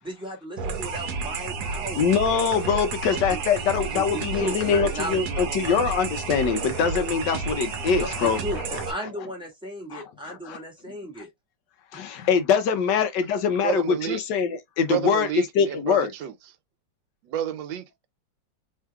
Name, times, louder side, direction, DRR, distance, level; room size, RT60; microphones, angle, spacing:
voice 1, 0.0-2.1 3.1-5.9 8.0-11.3, equal, 5° right, 2.0 m, -35 dB
sound 1, 0.6-8.9, right 4 dB, 65° right, 1.4 m, -31 dB
voice 2, 2.0-8.4 8.7-8.8 9.9-10.0 10.3-10.6 11.9-14.5 14.8-16.1, left 6 dB, 75° left, 1.3 m, -23 dB
voice 3, 13.6-14.2 14.9-16.3 17.2-18.1, right 11 dB, 85° right, 1.4 m, -30 dB
4.6 x 3.7 x 2.3 m
omnidirectional pair, 2.0 m